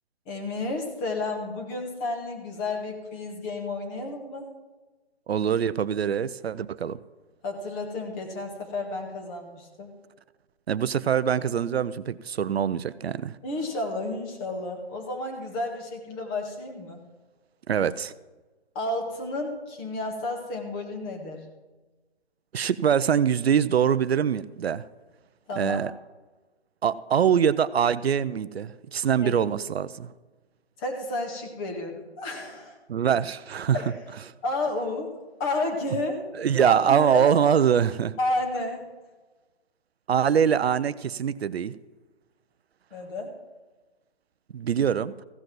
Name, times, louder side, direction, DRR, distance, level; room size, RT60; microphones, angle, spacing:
voice 1, 0.3-4.5 7.4-9.9 13.4-17.0 18.7-21.4 25.5-25.8 29.2-29.3 30.8-32.8 33.7-33.9 34.4-35.1 35.4-36.2 36.6-37.3 38.2-38.8 42.9-43.3, left 2 dB, 20° left, 3 dB, 1.6 m, -31 dB
voice 2, 5.3-7.0 10.7-13.4 17.7-18.1 22.5-24.8 25.6-25.9 26.8-30.1 32.9-33.8 36.4-38.1 40.1-41.8 44.5-45.1, right 8 dB, 70° right, 16 dB, 0.6 m, -23 dB
15.0 x 5.1 x 7.6 m, 1.2 s
hypercardioid pair, 150°, 32 cm